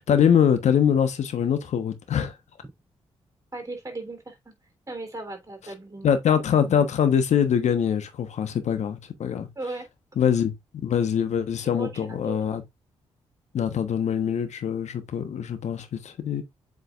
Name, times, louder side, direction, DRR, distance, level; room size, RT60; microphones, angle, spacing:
voice 1, 0.0-2.3 6.0-9.5 10.2-10.5 10.8-12.6 13.5-16.4, left 8 dB, 65° left, 1.2 m, -23 dB
voice 2, 3.5-4.5 4.9-6.1 9.6-9.8 11.7-12.4, right 2 dB, 25° right, 3.6 m, -36 dB
7.9 x 5.1 x 2.5 m
hypercardioid pair, 40°, 13 cm